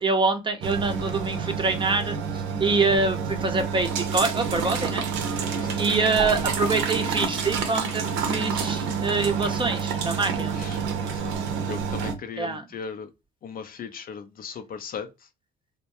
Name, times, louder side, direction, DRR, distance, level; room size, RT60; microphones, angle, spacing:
voice 1, 0.0-5.4 5.8-10.5 12.4-12.6, right 3 dB, 25° right, 0.6 m, -25 dB
sound 1, 0.6-12.1, right 6 dB, 75° right, 0.6 m, -28 dB
voice 2, 10.3-11.4 11.7-13.1 13.4-15.3, left 6 dB, 45° left, 0.5 m, -38 dB
2.2 x 2.1 x 2.8 m
supercardioid pair, 70°, 20 cm